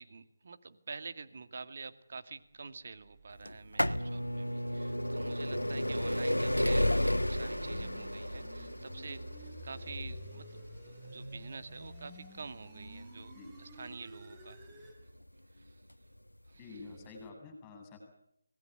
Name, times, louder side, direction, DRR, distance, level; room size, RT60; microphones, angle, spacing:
voice 1, 0.0-13.3 13.6-14.6 15.5-15.8 16.5-16.8, right 4 dB, 45° right, 11 dB, 2.0 m, -48 dB
sound 1, 2.8-15.0, right 1 dB, 15° right, 5.4 m, -51 dB
sound 2, 3.5-15.1 15.9-16.0 17.0-17.1 17.3-17.4, left 1 dB, 85° left, 1.4 m, -33 dB
voice 2, 16.6-18.0, left 3 dB, 15° left, 5 dB, 7.9 m, -49 dB
26.0 x 20.0 x 9.4 m, 0.76 s
figure-of-eight pair, 155°, 0 cm